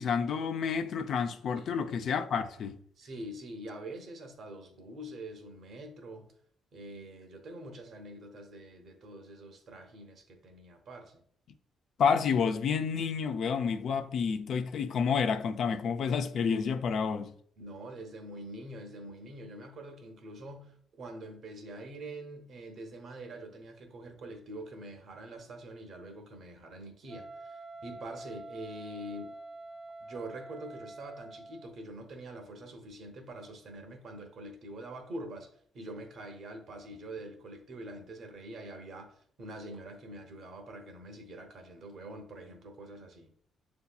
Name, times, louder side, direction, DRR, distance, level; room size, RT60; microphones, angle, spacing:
voice 1, 0.0-2.8 12.0-17.3, left 6 dB, 65° left, 0.4 m, -29 dB
voice 2, 3.0-6.3 6.7-11.2 17.6-29.4 30.0-35.5 35.7-43.3, right 1 dB, 60° right, 0.8 m, -45 dB
Wind instrument woodwind instrument, 27.1-31.8, right 2 dB, 40° right, 0.3 m, -46 dB
6.9 x 2.7 x 2.3 m
cardioid pair, 90°, 0 cm